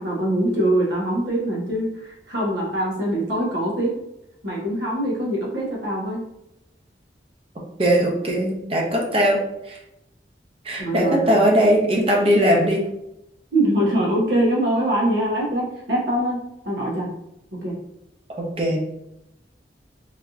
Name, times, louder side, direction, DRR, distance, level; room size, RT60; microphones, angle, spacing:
voice 1, 0.0-3.9 4.4-6.2 10.8-11.4 13.5-16.4 16.6-17.1 17.6-17.8, right 1 dB, 85° right, -4 dB, 1.0 m, -23 dB
voice 2, 7.8-9.4 9.7-9.8 10.6-12.8 18.4-18.8, equal, 30° right, -1 dB, 0.6 m, -19 dB
3.3 x 2.7 x 2.4 m, 0.84 s
head